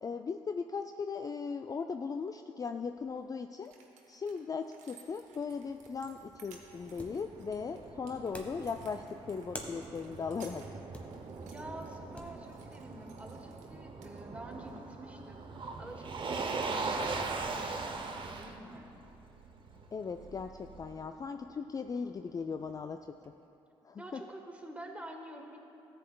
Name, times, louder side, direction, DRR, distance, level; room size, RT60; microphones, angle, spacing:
voice 1, 0.0-3.7 4.1-10.8 19.9-23.0 23.8-24.2, left 5 dB, 30° left, 7 dB, 0.3 m, -38 dB
sound 1, 3.2-3.3 3.6-13.7 14.0-14.7 15.8-15.9, right 6 dB, 70° right, 1.0 m, -60 dB
Motor vehicle (road), 6.0-21.1, right 3 dB, 40° right, 0.8 m, -41 dB
sound 2, 6.9-7.3 8.3-8.7 9.5-9.8 10.9-11.4 12.1-12.4 13.3-14.2, equal, 10° left, 1.4 m, -46 dB
voice 2, 11.5-15.4 15.8-19.0 24.0-25.6, right 1 dB, 10° right, 2 dB, 1.3 m, -47 dB
13.5 x 7.8 x 2.3 m, 2.7 s
hypercardioid pair, 50°, 12 cm